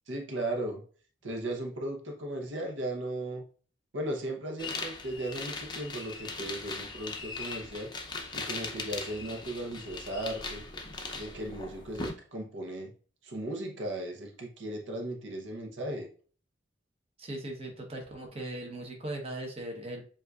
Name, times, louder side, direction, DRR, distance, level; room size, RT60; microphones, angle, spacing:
voice 1, 0.1-0.8 1.2-3.4 3.9-7.9 8.3-10.6 11.1-12.9 13.2-16.1, right 1 dB, 70° right, 1 dB, 0.9 m, -36 dB
sound 1, 4.6-12.1, left 3 dB, 25° left, 0.6 m, -39 dB
voice 2, 17.2-20.0, right 1 dB, 30° right, 0 dB, 0.9 m, -39 dB
7.4 x 2.6 x 2.4 m, 0.42 s
head